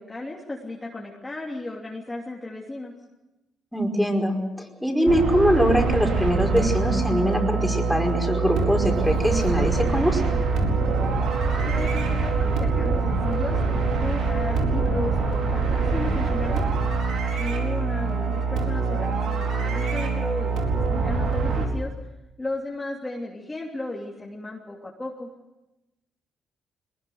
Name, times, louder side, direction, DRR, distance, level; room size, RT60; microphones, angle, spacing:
voice 1, 0.0-2.9 11.6-16.7 17.4-21.9 22.4-25.3, left 2 dB, 15° left, -3 dB, 3.1 m, -34 dB
voice 2, 3.7-10.2, equal, ahead, 1 dB, 5.2 m, -22 dB
sound 1, 5.1-21.7, right 4 dB, 80° right, 4.6 m, -24 dB
22.0 x 20.5 x 8.0 m, 1.0 s
cardioid pair, 90°, 0 cm